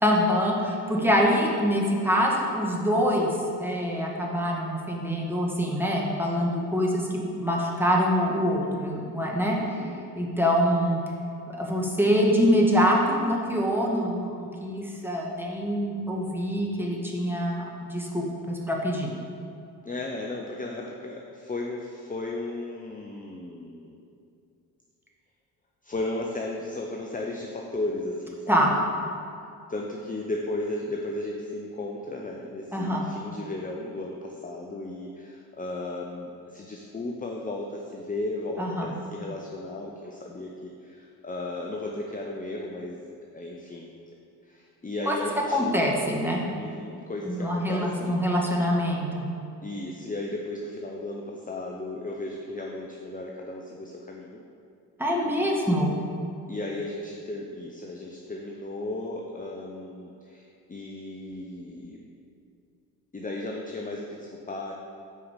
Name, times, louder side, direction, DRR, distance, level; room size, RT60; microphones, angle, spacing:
voice 1, 0.0-3.3 3.6-7.1 7.3-9.6 10.1-11.0 11.5-19.1 28.5-28.7 32.7-33.1 38.6-38.9 45.1-45.2 45.5-46.4 47.3-49.3 55.0-55.9, equal, 5° right, -2 dB, 1.7 m, -25 dB
voice 2, 1.0-1.3 9.6-10.1 19.8-24.0 25.8-28.7 29.7-43.9 44.4-45.9 46.5-48.3 49.6-54.4 56.5-62.0 63.1-64.7, left 2 dB, 15° left, 0 dB, 0.8 m, -35 dB
8.2 x 4.8 x 5.2 m, 2.5 s
hypercardioid pair, 40°, 47 cm